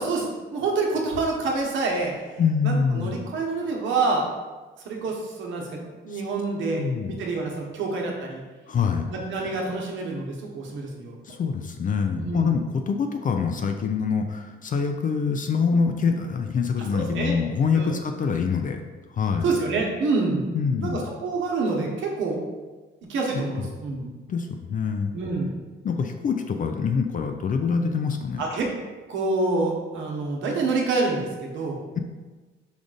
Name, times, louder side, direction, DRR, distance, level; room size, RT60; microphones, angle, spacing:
voice 1, 0.0-2.1 2.6-4.2 4.8-8.4 9.1-11.2 12.1-12.5 16.9-17.4 17.7-18.0 19.4-22.4 23.1-24.1 25.1-25.5 28.4-28.7 29.1-31.8, right 3 dB, 75° right, -1 dB, 1.0 m, -27 dB
voice 2, 2.4-3.2 6.1-6.2 6.8-7.1 8.7-9.1 11.2-18.8 19.1-19.5 20.5-21.1 24.3-25.1 25.8-28.4, left 5 dB, 45° left, 5 dB, 0.4 m, -25 dB
5.1 x 2.4 x 3.9 m, 1.3 s
cardioid pair, 90°, 20 cm